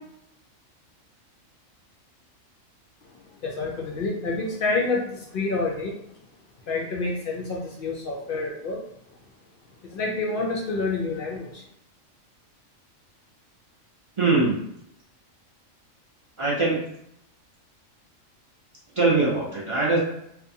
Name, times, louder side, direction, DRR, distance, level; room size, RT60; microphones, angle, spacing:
voice 1, 3.4-6.0 6.7-8.8 9.8-11.6, left 3 dB, 70° left, -2 dB, 0.5 m, -28 dB
voice 2, 14.2-14.6 16.4-16.8 18.9-20.0, right 3 dB, 40° right, -6 dB, 0.4 m, -22 dB
2.7 x 2.2 x 2.6 m, 0.76 s
omnidirectional pair, 1.4 m